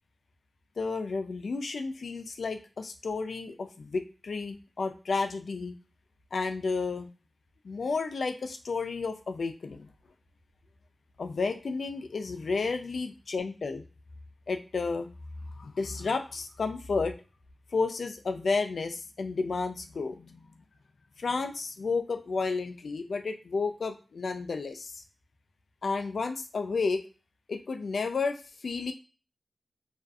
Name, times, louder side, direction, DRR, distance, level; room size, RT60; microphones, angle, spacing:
voice 1, 0.8-5.7 6.3-7.1 7.6-9.9 11.2-13.9 14.5-15.1 15.6-17.1 17.7-20.5 21.2-25.0 25.8-27.0 27.5-28.9, left 4 dB, 80° left, 7 dB, 0.3 m, -32 dB
2.5 x 2.3 x 2.3 m, 0.35 s
wide cardioid pair, 105°, 0 cm